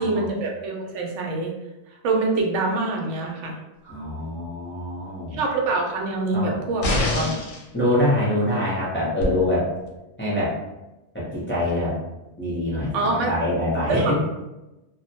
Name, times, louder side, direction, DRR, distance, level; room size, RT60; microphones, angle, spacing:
voice 1, 0.0-1.5 2.0-3.6 5.3-7.0 12.9-13.3 13.9-14.1, right 3 dB, 85° right, 1 dB, 0.9 m, -25 dB
voice 2, 3.8-5.4 6.3-6.6 7.1-7.3 7.7-9.7 10.2-10.5 11.1-11.9 12.4-14.1, left 1 dB, 15° left, -8 dB, 0.5 m, -24 dB
sound 1, 6.8-7.6 9.2-9.3, left 2 dB, 55° left, 0.7 m, -24 dB
2.2 x 2.2 x 2.7 m, 0.98 s
omnidirectional pair, 1.2 m